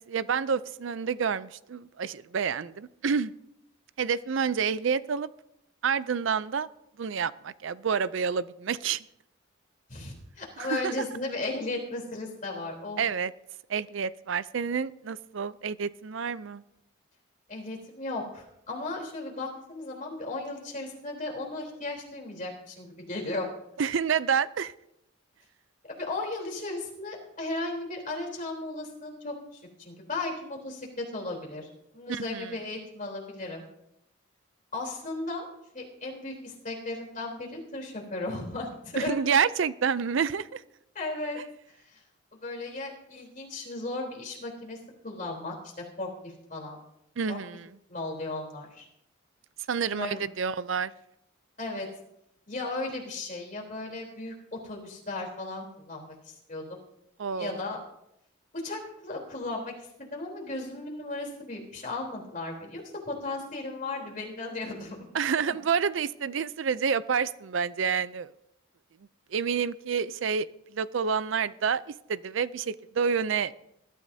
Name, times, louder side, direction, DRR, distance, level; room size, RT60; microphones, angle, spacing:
voice 1, 0.0-3.3 4.0-5.3 5.8-6.7 7.0-9.0 10.6-10.9 13.0-13.3 13.7-16.6 23.8-24.7 32.1-32.6 39.0-40.6 47.2-47.7 49.7-50.9 57.2-57.6 65.1-68.3 69.3-73.5, right 6 dB, 70° right, 16 dB, 0.5 m, -28 dB
voice 2, 9.9-13.0 17.5-23.5 25.9-31.7 31.9-33.6 34.7-35.5 35.7-39.1 40.9-41.4 41.8-42.0 42.4-44.8 45.0-46.8 47.3-47.4 47.9-48.9 49.9-50.2 51.6-51.9 52.5-56.8 57.3-57.8 58.5-59.7 60.0-65.0 65.5-65.6, left 2 dB, 40° left, 0 dB, 3.6 m, -36 dB
20.5 x 13.0 x 2.8 m, 0.79 s
head